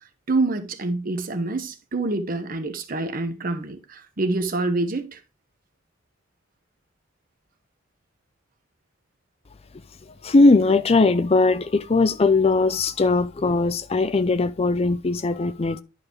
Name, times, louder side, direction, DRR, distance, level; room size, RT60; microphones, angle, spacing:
voice 1, 0.3-5.2, right 2 dB, 45° right, 1.0 m, -26 dB
voice 2, 10.2-15.8, left 3 dB, 30° left, 0.5 m, -19 dB
11.0 x 4.8 x 3.1 m
head